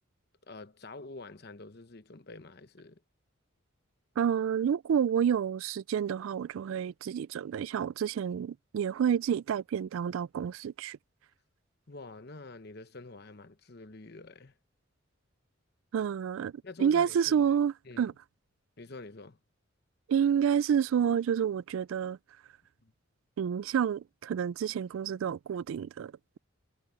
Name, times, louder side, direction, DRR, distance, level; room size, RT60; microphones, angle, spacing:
voice 1, 0.5-3.0 11.9-14.5 16.6-17.5 17.8-18.1 18.8-19.4 22.8-22.9, left 3 dB, 50° left, 1.0 m, -47 dB
voice 2, 4.2-11.0 15.9-16.5 16.8-18.1 20.1-22.2 23.4-26.4, right 8 dB, 70° right, 0.3 m, -29 dB
head